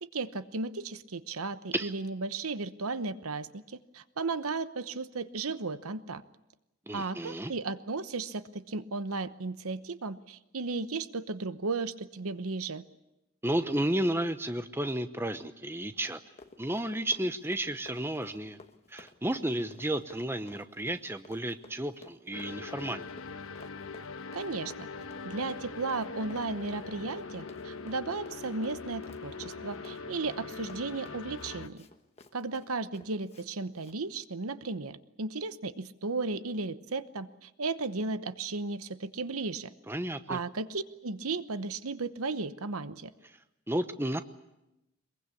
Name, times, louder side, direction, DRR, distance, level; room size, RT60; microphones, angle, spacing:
voice 1, 0.0-6.2 6.9-12.8 24.3-24.9 25.2-31.8 32.3-39.7 40.3-43.1, right 3 dB, 85° right, 13 dB, 1.0 m, -35 dB
voice 2, 6.9-7.5 13.4-16.2 16.6-18.6 18.9-23.1 39.9-40.4 43.7-44.2, right 1 dB, 10° right, 10 dB, 0.8 m, -32 dB
Run, 16.1-33.5 33.8-34.0, left 2 dB, 30° left, 1.3 m, -55 dB
sound 1, 22.3-31.7, left 4 dB, 70° left, 1.2 m, -42 dB
23.0 x 22.0 x 8.5 m, 0.92 s
head